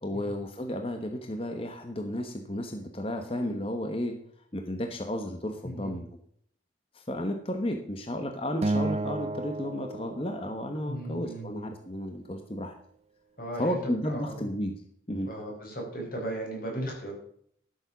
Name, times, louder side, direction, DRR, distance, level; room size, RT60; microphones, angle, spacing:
voice 1, 0.0-4.2 4.5-6.2 6.9-12.7 13.6-14.7 15.1-15.3, left 1 dB, 30° left, 5 dB, 1.1 m, -33 dB
voice 2, 5.6-6.0 10.8-11.6 13.4-13.8 14.0-14.5 15.2-17.1, right 1 dB, 50° left, 0 dB, 4.8 m, -36 dB
Acoustic guitar, 8.6-11.0, right 2 dB, 35° right, 0.6 m, -32 dB
12.0 x 7.0 x 6.1 m, 0.64 s
head